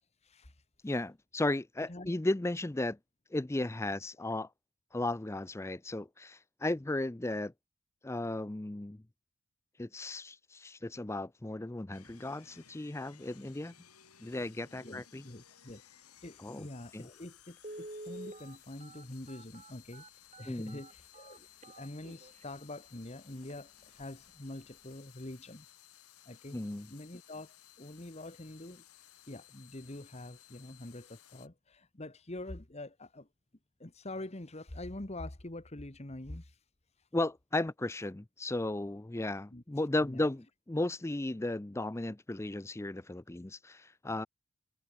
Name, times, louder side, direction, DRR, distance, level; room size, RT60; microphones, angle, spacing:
voice 1, 0.2-0.6 1.9-2.1 14.8-20.0 20.4-25.6 26.2-26.6 26.9-28.8 29.3-33.3 33.8-36.6 37.0-37.1 39.5-39.6 40.0-40.3, left 1 dB, 30° left, 1.3 m, -45 dB
voice 2, 0.8-3.0 3.3-4.5 4.9-7.5 8.0-9.0 9.8-13.7 14.2-15.2 16.4-16.7 16.9-17.1 20.5-20.8 26.5-26.9 37.1-44.3, left 2 dB, 10° left, 0.4 m, -35 dB
sound 1, 11.9-31.5, left 11 dB, 85° left, 7.5 m, -59 dB
Telephone, 16.8-16.9 17.6-22.4 23.0-23.1 23.4-23.6 24.0-24.3 24.6-24.7, right 1 dB, 30° right, 4.3 m, -48 dB
head